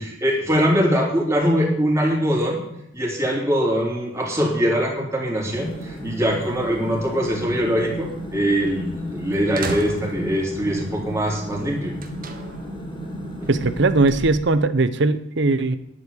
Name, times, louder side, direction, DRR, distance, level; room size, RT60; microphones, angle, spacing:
voice 1, 0.0-2.6 2.9-11.9 13.4-13.5, equal, 15° right, -2 dB, 3.4 m, -22 dB
sound 1, 5.4-14.5, right 1 dB, 25° left, 3.3 m, -34 dB
sound 2, 8.7-8.8 9.6-10.5 12.0-12.7, right 3 dB, 50° right, 1.5 m, -33 dB
voice 2, 13.5-15.8, right 3 dB, 65° right, 14 dB, 0.8 m, -19 dB
10.5 x 8.3 x 8.5 m, 0.78 s
head